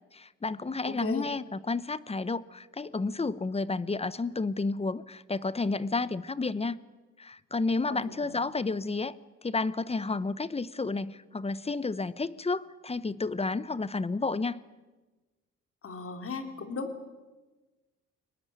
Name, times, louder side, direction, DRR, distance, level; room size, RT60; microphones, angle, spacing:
voice 1, 0.1-6.8 7.2-9.2 9.4-14.6, left 3 dB, 20° left, 18 dB, 0.9 m, -31 dB
voice 2, 1.0-1.3 8.2-8.4 15.8-17.1, left 4 dB, 45° left, 7 dB, 3.5 m, -36 dB
23.5 x 19.5 x 9.5 m, 1.2 s
cardioid pair, 90°, 30 cm